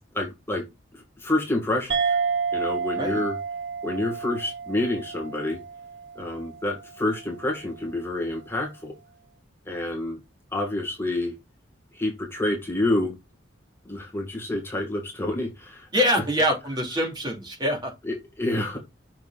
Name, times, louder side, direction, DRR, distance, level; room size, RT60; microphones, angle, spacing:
voice 1, 0.1-0.6 0.9-2.2 2.5-3.4 3.8-5.6 6.2-8.9 9.7-10.2 10.5-11.3 11.9-13.2 13.9-15.9 18.1-18.8, left 1 dB, 15° left, 2.1 m, -28 dB
sound 1, 1.9-6.8, right 5 dB, 65° right, 1.0 m, -30 dB
voice 2, 15.9-17.9, equal, 25° right, 2.6 m, -24 dB
6.5 x 5.9 x 2.5 m
head